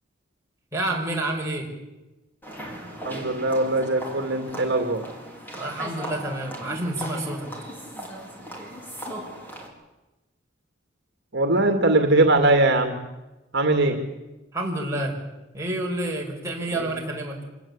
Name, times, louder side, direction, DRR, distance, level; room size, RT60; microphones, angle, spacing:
voice 1, 0.7-1.7 5.5-7.5 14.5-15.2 15.5-17.4, right 1 dB, 15° right, -2 dB, 5.5 m, -29 dB
sound 1, 2.4-9.7, equal, 10° left, 4.5 m, -38 dB
voice 2, 3.0-5.1 11.3-13.0 13.5-14.0 16.8-16.9, right 2 dB, 60° right, 5 dB, 2.3 m, -21 dB
26.5 x 18.5 x 8.8 m, 1.1 s
head